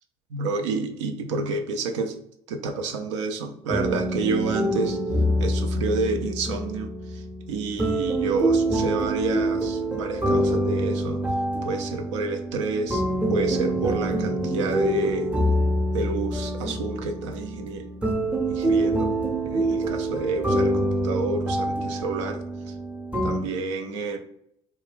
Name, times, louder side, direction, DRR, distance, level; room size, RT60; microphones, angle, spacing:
voice 1, 0.3-2.1 2.5-5.0 5.4-7.2 7.5-11.2 11.6-13.0 13.3-15.3 15.9-17.9 18.5-19.1 19.4-22.4 23.2-24.2, right 3 dB, 75° right, 5 dB, 0.4 m, -29 dB
sound 1, 3.7-23.4, right 1 dB, 10° right, 0.6 m, -26 dB
2.3 x 2.1 x 3.3 m, 0.71 s
hypercardioid pair, 55°, 16 cm